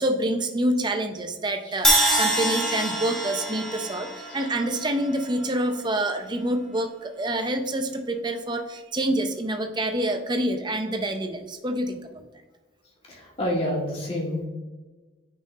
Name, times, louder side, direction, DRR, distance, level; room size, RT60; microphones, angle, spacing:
voice 1, 0.0-12.2, right 1 dB, 25° right, 6 dB, 0.6 m, -27 dB
Crash cymbal, 1.8-5.9, right 1 dB, 5° left, 1.0 m, -25 dB
voice 2, 13.0-14.5, left 1 dB, 30° left, -3 dB, 1.8 m, -29 dB
9.4 x 5.5 x 2.8 m, 1.3 s
head